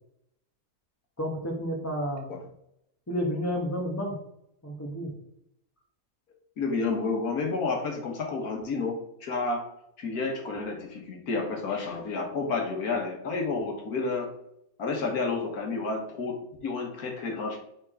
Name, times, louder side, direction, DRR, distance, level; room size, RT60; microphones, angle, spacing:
voice 1, 1.2-2.4 3.1-4.2 4.6-5.1, equal, 10° left, -3 dB, 0.9 m, -31 dB
voice 2, 6.6-9.7 10.0-14.3 14.8-17.6, left 4 dB, 85° left, 2 dB, 1.8 m, -30 dB
4.7 x 4.6 x 4.9 m, 0.77 s
omnidirectional pair, 1.6 m